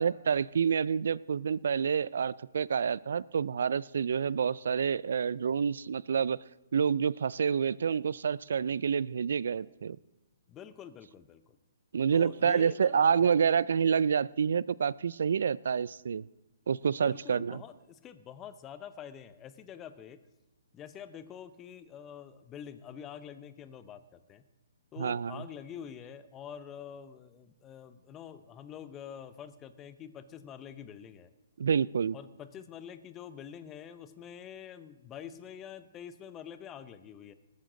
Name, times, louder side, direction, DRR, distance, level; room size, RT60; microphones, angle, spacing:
voice 1, 0.0-6.4 6.7-10.0 11.9-16.3 16.7-17.6 25.0-25.4 31.6-32.2, right 7 dB, 65° right, 21 dB, 0.4 m, -28 dB
voice 2, 10.5-11.6 12.1-13.0 17.0-20.2 20.7-24.4 24.9-31.3 32.1-37.3, left 8 dB, 20° left, 12 dB, 0.7 m, -46 dB
19.5 x 9.6 x 3.9 m, 1.0 s
hypercardioid pair, 140°, 0 cm